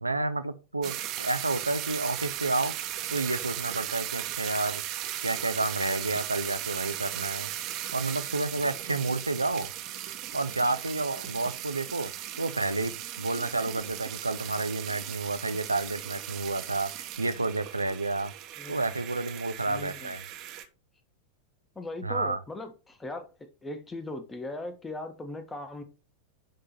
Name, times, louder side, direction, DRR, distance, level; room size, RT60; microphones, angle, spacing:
voice 1, 0.0-2.7 3.1-4.8 5.2-7.5 7.9-9.7 10.3-12.1 12.4-16.9 17.2-18.3 18.7-20.2 22.0-22.4, right 2 dB, 80° right, 0.7 m, -30 dB
sound 1, 0.8-20.7, right 12 dB, 40° right, 1.2 m, -37 dB
voice 2, 19.7-20.1 21.7-25.8, left 2 dB, 15° left, 1.5 m, -39 dB
10.5 x 3.8 x 4.4 m
figure-of-eight pair, 90°, 0 cm